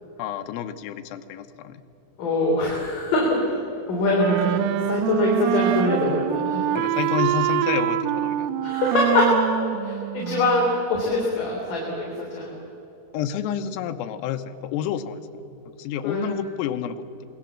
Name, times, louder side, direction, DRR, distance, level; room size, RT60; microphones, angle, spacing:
voice 1, 0.2-1.8 6.8-8.5 13.1-15.2 15.8-17.1, left 9 dB, 85° left, 7 dB, 3.6 m, -29 dB
voice 2, 2.2-3.4 3.9-6.7 8.6-9.5 9.8-12.5 16.0-16.3, left 2 dB, 45° left, -3 dB, 4.7 m, -23 dB
Wind instrument woodwind instrument, 4.1-10.8, right 12 dB, 85° right, 3.4 m, -25 dB
26.5 x 21.5 x 7.3 m, 2.9 s
omnidirectional pair, 5.9 m